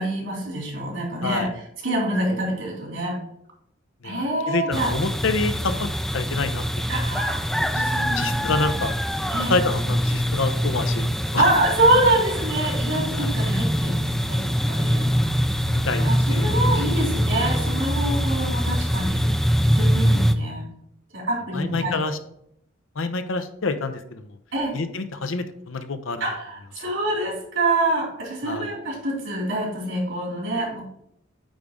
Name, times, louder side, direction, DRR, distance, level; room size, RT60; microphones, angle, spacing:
voice 1, 0.0-3.2 4.0-4.9 6.9-8.7 9.3-9.6 11.4-15.1 16.0-19.3 19.7-20.7 21.1-22.1 24.5-24.8 26.2-30.8, right 1 dB, 75° right, -2 dB, 3.3 m, -26 dB
voice 2, 1.2-1.5 2.1-2.4 4.0-5.9 6.1-6.9 7.6-7.9 8.1-9.0 9.5-11.4 13.1-13.3 15.7-16.5 21.5-22.2 23.0-24.3 24.7-26.2 28.4-28.7, left 3 dB, 85° left, 10 dB, 0.8 m, -27 dB
sound 1, 4.7-20.4, equal, ahead, 0.4 m, -23 dB
9.0 x 3.6 x 5.2 m, 0.72 s
head